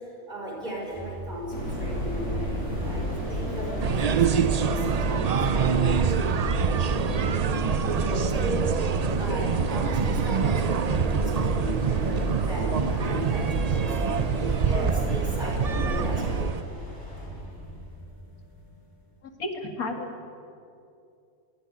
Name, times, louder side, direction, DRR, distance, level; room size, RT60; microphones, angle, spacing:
voice 1, 0.0-7.4 8.1-8.8 9.2-16.7, equal, 30° right, -3 dB, 5.8 m, -37 dB
sound 1, 0.6-19.1, right 4 dB, 15° left, 5.9 m, -40 dB
sound 2, 1.5-16.5, right 1 dB, 55° left, 6.0 m, -31 dB
sound 3, 3.8-16.6, right 7 dB, 70° right, 0.3 m, -26 dB
voice 2, 19.4-20.3, left 2 dB, 85° left, 4 dB, 2.6 m, -32 dB
22.5 x 14.5 x 9.8 m, 2.5 s
omnidirectional pair, 1.5 m